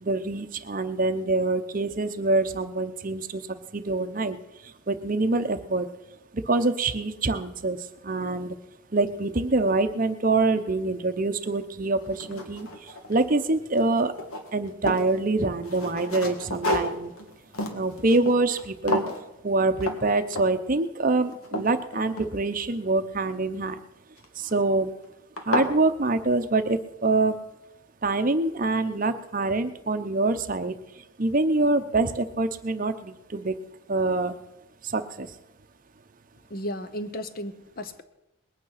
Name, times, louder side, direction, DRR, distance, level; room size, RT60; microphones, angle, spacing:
voice 1, 0.0-3.4 3.7-4.4 4.9-5.9 6.5-7.8 8.0-8.5 8.9-12.7 13.1-14.1 14.5-17.1 17.7-19.0 19.4-23.8 24.4-24.9 25.5-27.4 28.0-30.8 31.2-33.5 33.9-34.4 34.8-35.3, right 2 dB, 40° right, 9 dB, 0.7 m, -25 dB
sound 1, 11.4-11.5 12.0-13.5 13.7-15.1 15.6-18.6 18.9-19.2 19.8-20.0 20.3-20.7 21.1-22.7 24.2-24.6 25.0-25.1 25.4-25.7, left 1 dB, 85° left, 2.0 m, -31 dB
voice 2, 36.5-38.0, equal, 45° left, 11 dB, 0.8 m, -34 dB
20.5 x 9.2 x 5.7 m, 0.94 s
head